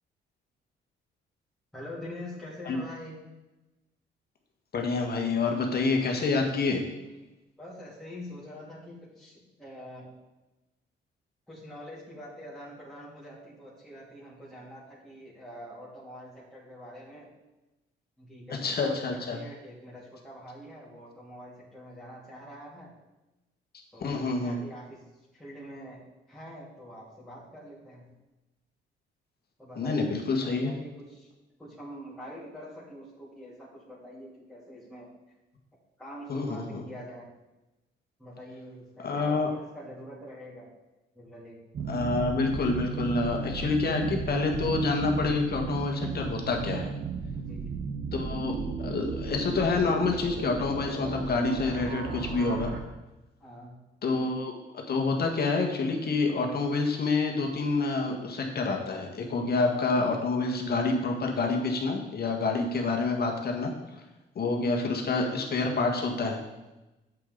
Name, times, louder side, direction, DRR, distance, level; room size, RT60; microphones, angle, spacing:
voice 1, 1.7-3.2 7.6-10.1 11.5-17.3 18.2-22.9 23.9-25.0 25.3-26.0 26.3-28.1 29.6-30.2 30.5-31.3 31.6-35.1 36.0-37.3 38.2-40.7 41.1-41.6 47.3-47.8 53.4-53.8, equal, ahead, -9 dB, 3.0 m, -45 dB
voice 2, 4.7-6.8 18.5-19.4 24.0-24.6 29.8-30.7 36.3-36.6 39.0-39.5 41.9-46.9 48.1-52.7 54.0-63.7 64.3-66.4, left 3 dB, 55° left, 2 dB, 1.7 m, -28 dB
sound 1, 41.7-52.8, right 5 dB, 55° right, 1.4 m, -34 dB
8.6 x 7.6 x 4.0 m, 1.0 s
cardioid pair, 90°, 20 cm